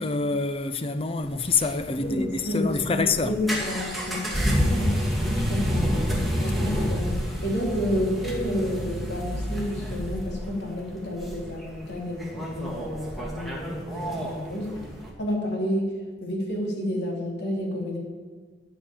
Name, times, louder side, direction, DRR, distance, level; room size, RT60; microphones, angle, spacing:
voice 1, 0.0-3.4, left 4 dB, 35° left, 0.5 m, -26 dB
sound 1, 1.2-15.1, equal, ahead, 2.1 m, -29 dB
voice 2, 2.0-4.9 5.4-5.8 6.4-14.8 15.2-15.9 16.2-18.0, left 1 dB, 85° left, 2.8 m, -30 dB
11.0 x 6.1 x 9.0 m
head